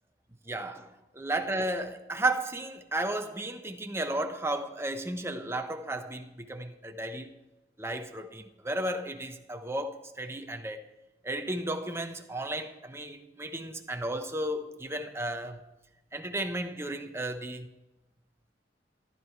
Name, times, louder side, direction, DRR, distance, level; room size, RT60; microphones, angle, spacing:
voice 1, 0.5-0.9 1.1-7.3 7.8-10.8 11.2-15.6 16.1-17.7, right 1 dB, 15° right, 1.1 m, -33 dB
14.5 x 12.5 x 4.7 m
head